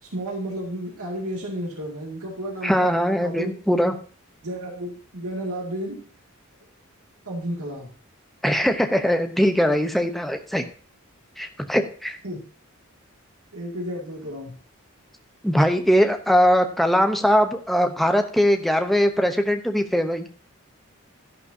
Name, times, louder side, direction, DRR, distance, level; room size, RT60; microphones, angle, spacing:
voice 1, 0.0-2.9 3.2-3.5 4.4-6.0 7.3-7.9 12.2-12.4 13.5-14.6, right 1 dB, 90° right, -2 dB, 2.4 m, -32 dB
voice 2, 2.6-3.9 8.4-10.6 11.4-12.2 15.4-20.3, equal, ahead, 5 dB, 0.9 m, -21 dB
12.5 x 11.0 x 2.8 m, 0.40 s
head